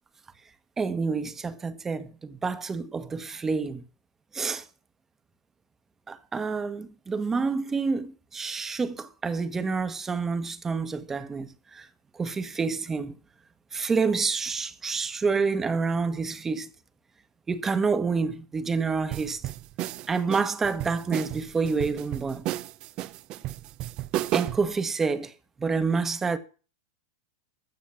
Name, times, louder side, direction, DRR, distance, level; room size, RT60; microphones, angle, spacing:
voice 1, 0.8-3.8 4.3-4.6 6.1-11.9 12.1-13.1 13.7-16.7 17.5-19.4 20.1-22.5 24.3-25.3 25.6-26.4, right 4 dB, 15° right, 1.2 m, -28 dB
sound 1, 19.1-24.7, right 15 dB, 45° right, 0.6 m, -32 dB
14.0 x 6.0 x 7.1 m
hypercardioid pair, 115°, 2 cm